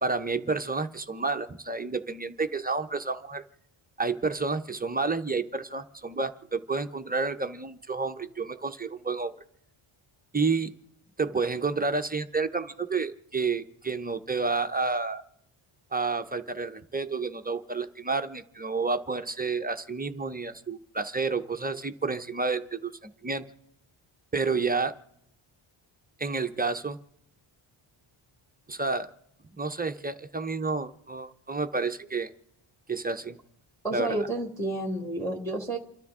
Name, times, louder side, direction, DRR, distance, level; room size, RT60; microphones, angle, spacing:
voice 1, 0.0-3.4 4.0-9.3 10.3-10.7 11.2-15.2 15.9-23.5 24.3-24.9 26.2-27.0 28.7-29.1 29.5-32.3 32.9-33.4 33.9-34.2, right 4 dB, 20° right, 8 dB, 0.5 m, -30 dB
voice 2, 33.8-35.8, right 2 dB, 5° left, 2 dB, 1.5 m, -30 dB
29.0 x 12.5 x 3.6 m, 0.78 s
wide cardioid pair, 165°, 50 cm